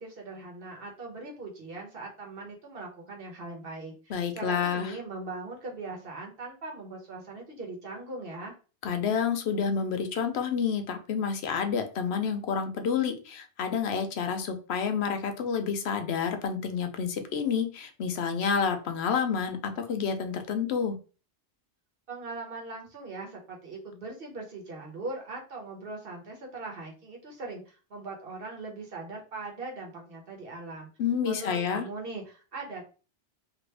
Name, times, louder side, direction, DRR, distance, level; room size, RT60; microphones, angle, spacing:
voice 1, 0.0-8.5 22.1-30.9 31.2-32.8, right 3 dB, 55° right, 1 dB, 1.2 m, -40 dB
voice 2, 4.1-5.0 8.8-21.0 31.0-31.9, left 6 dB, 65° left, 6 dB, 0.8 m, -29 dB
2.9 x 2.6 x 3.2 m, 0.35 s
omnidirectional pair, 1.2 m